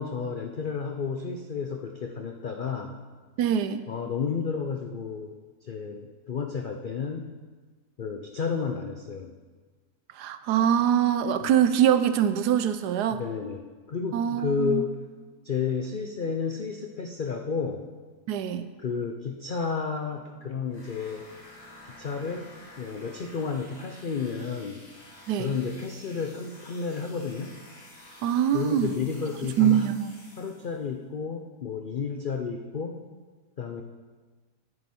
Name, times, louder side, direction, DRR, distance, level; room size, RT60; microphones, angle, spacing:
voice 1, 0.0-2.9 3.9-5.3 5.6-7.3 8.0-9.3 11.4-11.6 13.1-13.6 13.9-15.0 15.4-17.8 18.8-21.3 21.9-22.5 22.8-24.8 25.4-27.6 28.5-29.9 30.4-33.0 33.6-33.8, left 5 dB, 90° left, 4 dB, 0.4 m, -31 dB
voice 2, 3.4-3.8 10.2-13.2 14.1-14.9 18.3-18.7 25.3-25.5 28.2-28.9 29.6-30.1, right 9 dB, 80° right, 11 dB, 1.2 m, -23 dB
sound 1, 20.7-30.9, left 1 dB, 70° left, 3.2 m, -50 dB
9.7 x 9.5 x 4.3 m, 1.4 s
omnidirectional pair, 1.8 m